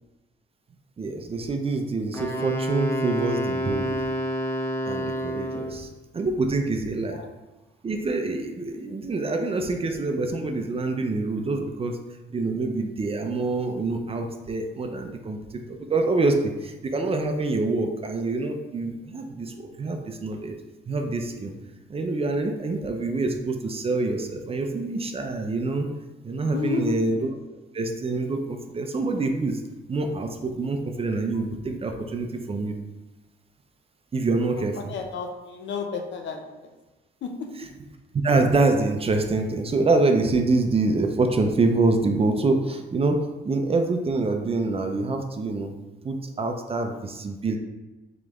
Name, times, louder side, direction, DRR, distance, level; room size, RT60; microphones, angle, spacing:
voice 1, 1.0-4.1 4.9-7.2 7.8-12.0 12.3-20.6 20.9-21.5 21.9-25.9 26.2-27.2 27.7-29.6 29.9-32.8 34.1-34.8 38.2-45.7 46.0-47.6, right 3 dB, 30° right, 4 dB, 0.5 m, -26 dB
Wind instrument woodwind instrument, 2.1-5.9, right 1 dB, 10° left, 0.6 m, -28 dB
voice 2, 26.4-27.0 31.3-31.4 34.8-36.7 37.2-37.5, left 5 dB, 70° left, 4 dB, 0.7 m, -32 dB
3.9 x 3.2 x 3.5 m, 1.1 s
cardioid pair, 90°, 20 cm